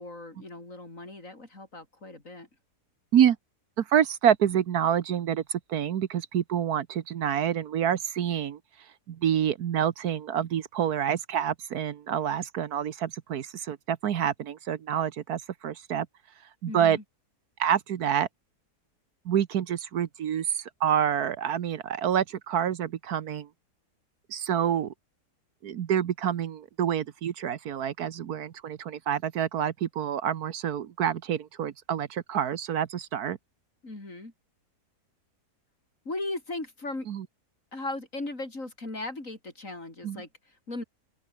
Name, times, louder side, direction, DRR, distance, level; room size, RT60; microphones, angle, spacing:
voice 1, 0.0-2.5 16.7-17.0 33.8-34.3 36.1-37.1 37.7-40.8, left 2 dB, 50° left, 5.5 m, -37 dB
voice 2, 3.8-8.6 9.1-16.1 16.6-17.0 17.6-18.3 19.2-23.5 24.3-24.9 25.6-33.4 37.1-37.2 40.0-40.2, right 9 dB, 70° right, 1.4 m, -27 dB
open air
omnidirectional pair, 1.7 m